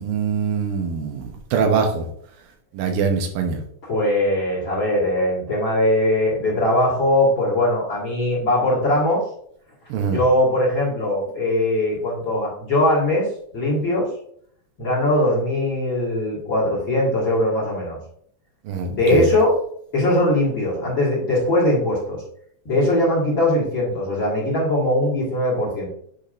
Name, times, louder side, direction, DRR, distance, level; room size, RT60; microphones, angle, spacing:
voice 1, 0.0-2.1 2.7-3.6 9.9-10.2 18.7-19.3, right 5 dB, 90° right, 4 dB, 2.8 m, -23 dB
voice 2, 3.8-9.2 10.0-13.3 13.5-14.1 14.8-18.0 18.9-19.6 19.9-22.2 22.7-25.9, left 1 dB, 40° left, -6 dB, 2.3 m, -20 dB
8.3 x 5.1 x 2.6 m, 0.65 s
omnidirectional pair, 4.0 m